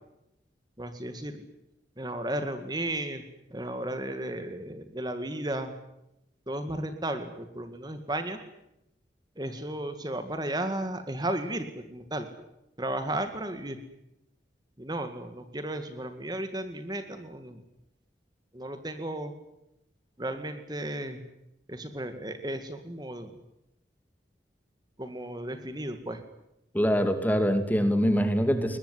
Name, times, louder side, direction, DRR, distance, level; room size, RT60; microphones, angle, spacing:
voice 1, 0.8-1.5 2.0-3.2 3.5-5.7 6.5-8.4 9.4-12.3 12.8-13.8 14.8-17.6 18.5-19.3 20.2-21.2 21.7-23.3 25.0-26.2, right 1 dB, 20° right, 8 dB, 2.0 m, -34 dB
voice 2, 26.7-28.8, equal, 10° left, 8 dB, 2.7 m, -24 dB
21.5 x 21.5 x 9.8 m, 0.85 s
head